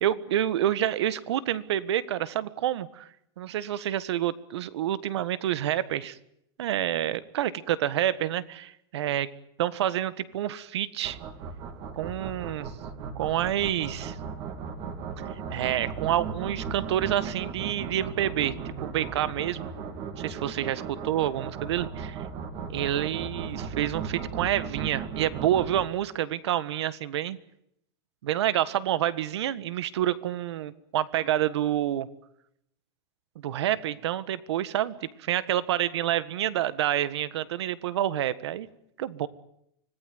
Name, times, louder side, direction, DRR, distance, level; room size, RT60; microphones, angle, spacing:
voice 1, 0.0-3.1 3.4-6.2 6.6-9.3 9.6-11.2 11.9-12.7 13.1-14.2 15.5-19.7 20.2-22.2 22.7-27.4 28.2-32.1 33.3-38.7 39.0-39.3, right 12 dB, 80° right, 16 dB, 1.6 m, -28 dB
sound 1, 11.0-25.8, right 6 dB, 35° right, 3.1 m, -36 dB
25.5 x 19.0 x 9.4 m, 0.77 s
supercardioid pair, 170°, 14 cm